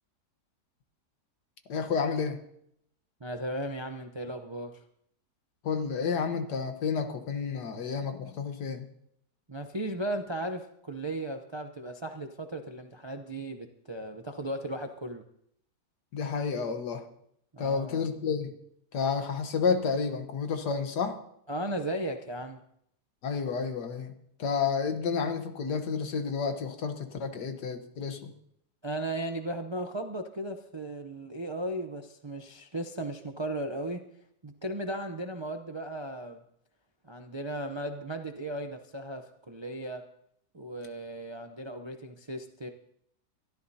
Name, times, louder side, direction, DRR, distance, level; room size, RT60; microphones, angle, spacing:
voice 1, 1.7-2.4 5.6-8.9 16.1-17.1 17.6-18.5 18.9-21.2 23.2-24.1 24.4-28.3, left 5 dB, 85° left, 7 dB, 1.8 m, -30 dB
voice 2, 3.2-4.8 9.5-15.2 17.5-18.0 21.5-22.6 28.8-34.1 34.4-36.4 37.1-40.0 40.5-42.7, right 1 dB, 35° right, 5 dB, 0.4 m, -36 dB
23.5 x 13.0 x 2.8 m, 0.71 s
omnidirectional pair, 1.7 m